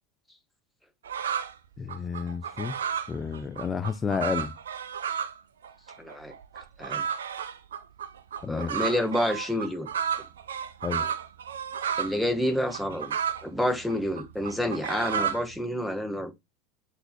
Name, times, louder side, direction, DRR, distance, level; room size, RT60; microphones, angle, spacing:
sound 1, 1.0-1.5 1.9-5.4 5.6-12.2 12.5-15.6, right 8 dB, 80° right, 0.5 m, -32 dB
voice 1, 1.8-2.8 3.1-4.5 8.4-8.8 10.8-11.1, left 6 dB, 25° left, 0.6 m, -31 dB
voice 2, 6.0-6.3 6.8-7.0 8.5-9.9 12.0-13.1 13.4-16.3, left 1 dB, ahead, 1.1 m, -28 dB
7.9 x 2.9 x 2.2 m
hypercardioid pair, 80°, 0 cm